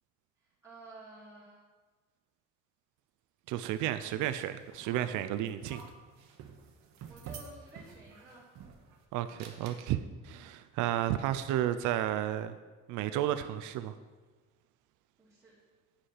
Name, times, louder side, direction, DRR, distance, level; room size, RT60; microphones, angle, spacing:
voice 1, 0.4-1.6 4.8-5.0 5.7-6.0 7.1-8.5 15.2-15.6, right 2 dB, 10° right, -9 dB, 2.1 m, -52 dB
voice 2, 3.5-5.8 9.1-12.6 12.9-13.9, right 12 dB, 85° right, 11 dB, 0.5 m, -32 dB
sound 1, 3.7-9.0 9.4-9.8, right 7 dB, 65° right, 1.0 m, -50 dB
8.4 x 5.3 x 5.7 m, 1.3 s
cardioid pair, 155°, 30 cm